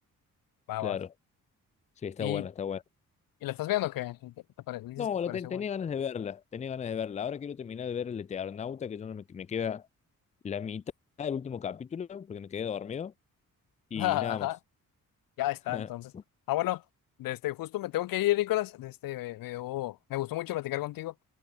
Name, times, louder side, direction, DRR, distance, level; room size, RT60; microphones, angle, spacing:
voice 1, 0.8-1.1 2.0-2.8 5.0-9.9 10.4-10.8 11.2-13.1 13.9-14.5 15.7-15.9 16.1-16.2, left 7 dB, 20° left, 0.4 m, -34 dB
voice 2, 3.4-4.3 4.7-5.6 14.0-14.6 15.4-16.1 16.5-16.8 17.2-21.1, left 16 dB, 85° left, 0.6 m, -32 dB
wide cardioid pair, 175°, 33 cm